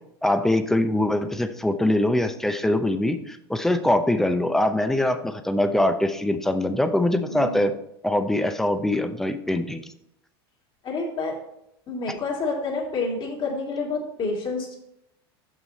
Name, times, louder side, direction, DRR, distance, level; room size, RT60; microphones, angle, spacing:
voice 1, 0.2-7.7 8.0-9.8, left 1 dB, 5° left, 8 dB, 0.6 m, -23 dB
voice 2, 7.3-7.7 10.8-11.4 11.9-14.8, left 3 dB, 35° left, -1 dB, 2.4 m, -28 dB
6.2 x 6.2 x 4.1 m, 0.79 s
hypercardioid pair, 100°, 13 cm